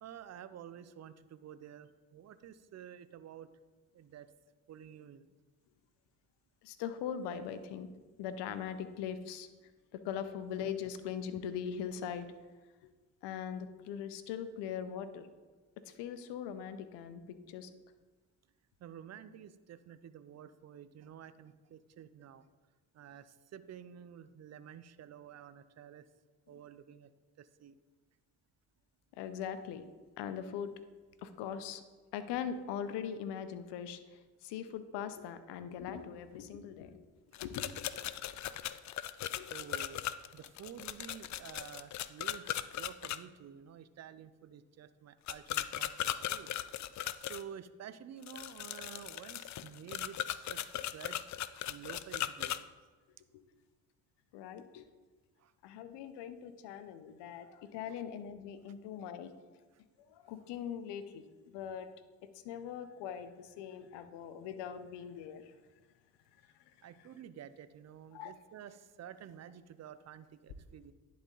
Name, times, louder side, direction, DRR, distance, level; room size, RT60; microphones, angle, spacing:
voice 1, 0.0-3.5 3.9-4.3 4.7-5.3 18.8-22.5 22.9-26.0 26.5-27.1 27.4-27.8 39.5-40.0 40.3-46.5 47.2-51.3 51.7-52.7 55.4-55.5 57.9-58.0 66.8-70.9, right 9 dB, 40° right, 14 dB, 0.6 m, -51 dB
voice 2, 6.6-7.9 8.2-9.5 9.9-12.3 13.2-15.3 15.9-17.2 17.5-17.7 29.2-29.8 30.2-30.7 31.2-31.8 32.1-34.0 34.4-37.0 37.4-37.7 39.4-39.5 54.3-54.9 55.6-59.3 60.3-61.9 62.4-65.4 68.1-68.3, left 8 dB, 70° left, 11 dB, 0.8 m, -41 dB
sound 1, 37.3-43.2 45.3-47.4 48.2-52.6, left 12 dB, 45° left, 0.4 m, -38 dB
10.5 x 4.2 x 3.9 m, 1.3 s
hypercardioid pair, 55°, 43 cm